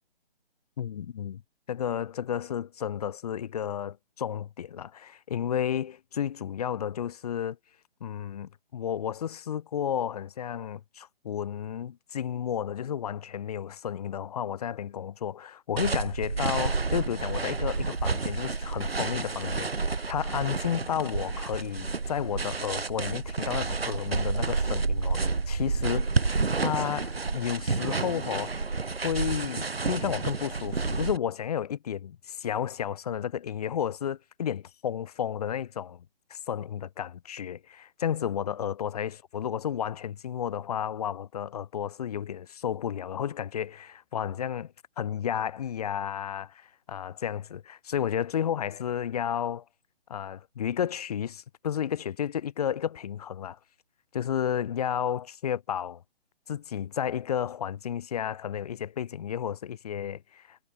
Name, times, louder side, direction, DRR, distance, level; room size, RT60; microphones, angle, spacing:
voice 1, 0.8-1.4 1.7-7.6 8.0-26.1 26.6-28.5 29.0-36.0 36.3-49.6 50.1-53.6 54.1-56.0 56.5-60.6, left 9 dB, 40° left, 1.3 m, -32 dB
sound 1, 15.8-31.2, right 4 dB, 75° right, 3.6 m, -30 dB
figure-of-eight pair, 140°, 30 cm